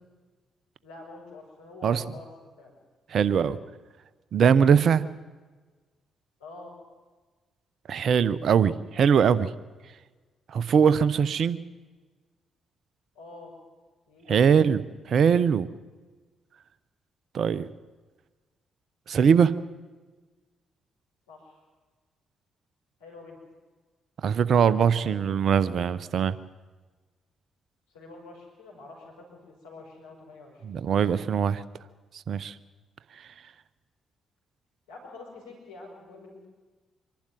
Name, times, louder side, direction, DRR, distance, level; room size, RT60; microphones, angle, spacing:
voice 1, 0.8-2.7 3.2-3.5 6.4-6.7 13.1-13.5 14.1-14.4 21.3-21.6 23.0-23.4 24.9-25.2 27.9-30.8 34.9-36.4, left 3 dB, 80° left, -1 dB, 5.0 m, -46 dB
voice 2, 3.1-3.6 4.3-5.0 7.9-9.5 10.5-11.6 14.3-15.7 17.3-17.7 19.1-19.5 24.2-26.4 30.6-31.6 32.3-32.5, right 7 dB, 60° right, 16 dB, 0.8 m, -21 dB
25.5 x 12.0 x 9.2 m, 1.3 s
hypercardioid pair, 40°, 0 cm